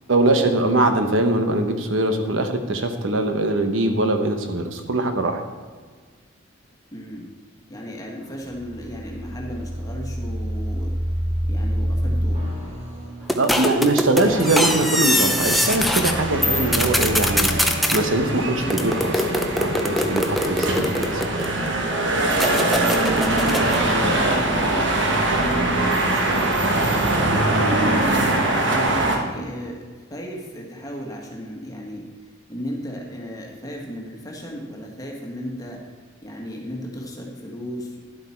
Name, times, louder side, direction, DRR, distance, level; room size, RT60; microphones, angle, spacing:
voice 1, 0.1-5.4 13.4-17.5 17.9-19.1 19.6-21.2, right 2 dB, 80° right, 6 dB, 1.0 m, -22 dB
voice 2, 6.9-7.2 7.7-10.9 11.5-12.5 18.5-18.9 22.4-24.8 25.2-28.4 28.6-29.8 30.1-32.1 32.5-35.8 36.2-38.0, equal, 20° left, 0 dB, 1.6 m, -34 dB
sound 1, 8.2-17.6, equal, 35° right, 1.9 m, -29 dB
sound 2, 13.3-16.1 16.4-18.0 18.7-21.7 22.3-23.8, left 1 dB, ahead, 0.6 m, -23 dB
sound 3, 14.2-29.2, right 2 dB, 65° right, 1.4 m, -23 dB
11.0 x 7.9 x 4.5 m, 1.5 s
head